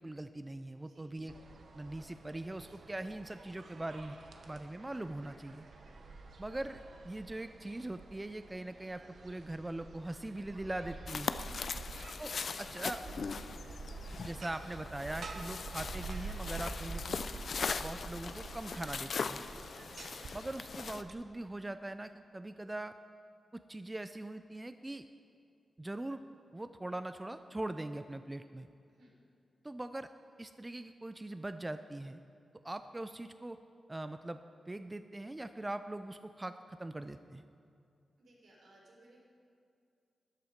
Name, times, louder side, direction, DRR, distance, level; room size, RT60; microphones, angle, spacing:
voice 1, 0.0-1.3 1.7-4.2 4.5-5.7 6.4-11.3 12.2-13.0 14.2-17.2 17.8-19.4 20.3-22.9 23.5-25.0 25.8-26.2 26.5-28.7 29.6-30.1 30.4-32.2 32.6-33.6 33.9-34.4 34.7-37.4, right 1 dB, 15° right, 10 dB, 0.3 m, -41 dB
sound 1, 1.3-21.1, right 3 dB, 55° right, 0.9 m, -48 dB
sound 2, 11.1-21.0, left 5 dB, 55° left, 0.4 m, -40 dB
voice 2, 38.2-39.2, right 1 dB, 75° right, -3 dB, 3.6 m, -62 dB
13.5 x 11.0 x 5.0 m, 2.5 s
wide cardioid pair, 130°, 0 cm